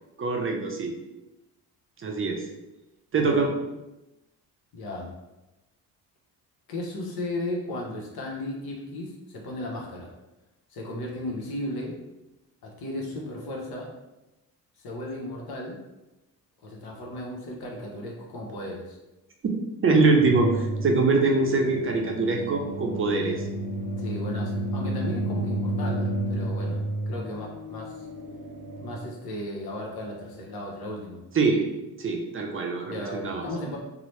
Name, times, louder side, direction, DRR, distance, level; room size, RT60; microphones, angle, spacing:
voice 1, 0.2-0.9 2.0-2.4 3.1-3.5 19.8-23.4 31.3-31.7 32.0-33.4, right 3 dB, 35° right, 1 dB, 0.5 m, -23 dB
voice 2, 4.7-5.1 6.7-10.1 10.7-12.0 12.6-13.9 14.8-15.8 16.6-19.0 24.0-28.1 28.8-31.2 32.8-33.8, left 1 dB, 70° left, -1 dB, 0.9 m, -35 dB
sound 1, 20.2-29.0, right 1 dB, 70° right, 0.6 m, -31 dB
2.8 x 2.0 x 3.1 m, 0.99 s
cardioid pair, 75°, 39 cm